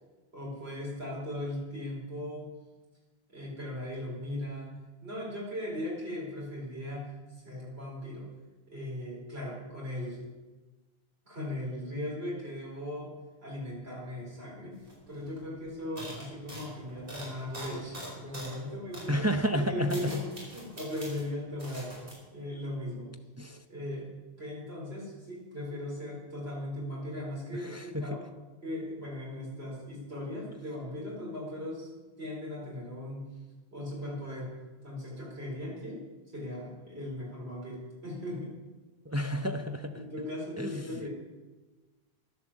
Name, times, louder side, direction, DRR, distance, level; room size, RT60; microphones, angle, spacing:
voice 1, 0.3-2.5 3.3-8.3 8.7-10.2 11.2-19.3 19.5-21.9 22.3-23.1 23.7-28.3 28.6-31.9 32.2-33.3 33.7-34.5 34.8-36.0 36.3-38.5 39.9-41.1, left 1 dB, 75° right, -4 dB, 4.7 m, -38 dB
sound 1, 14.9-15.0 15.2-15.4 16.0-18.6 18.9-19.1 19.6-21.3 21.6-22.1, equal, 60° right, 5.1 m, -44 dB
voice 2, 19.1-20.1 23.4-23.6 27.5-28.1 39.1-39.9 40.6-41.1, equal, 15° right, 6 dB, 0.6 m, -31 dB
11.5 x 11.5 x 7.3 m, 1.2 s
omnidirectional pair, 1.1 m